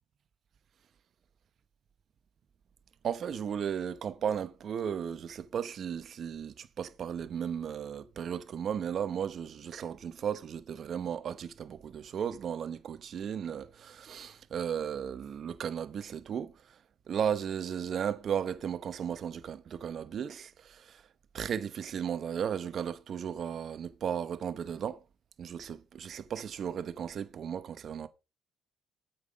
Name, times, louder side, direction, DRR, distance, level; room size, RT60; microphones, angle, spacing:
voice 1, 3.0-16.5 17.1-21.0 21.3-25.0 25.4-28.1, right 8 dB, 50° right, 0.9 m, -35 dB
8.1 x 5.7 x 5.1 m
cardioid pair, 115°, 0 cm